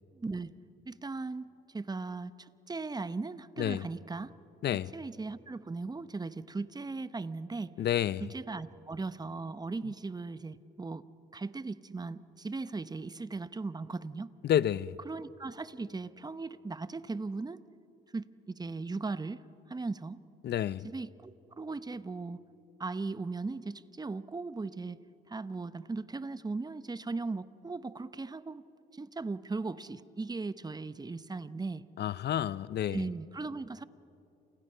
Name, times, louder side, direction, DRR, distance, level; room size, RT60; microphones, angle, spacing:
voice 1, 0.1-0.5 0.9-1.5 1.7-4.3 4.9-7.7 8.2-11.1 11.3-14.3 15.0-17.6 18.1-19.4 19.7-20.2 20.8-22.4 22.8-25.0 25.3-28.6 28.9-31.8 32.8-33.8, right 3 dB, 20° right, 0.8 m, -38 dB
voice 2, 4.6-4.9 7.8-8.3 14.4-15.0 20.4-20.9 32.0-33.0, left 10 dB, 55° left, 0.6 m, -30 dB
29.0 x 27.5 x 5.6 m
cardioid pair, 90°, 20 cm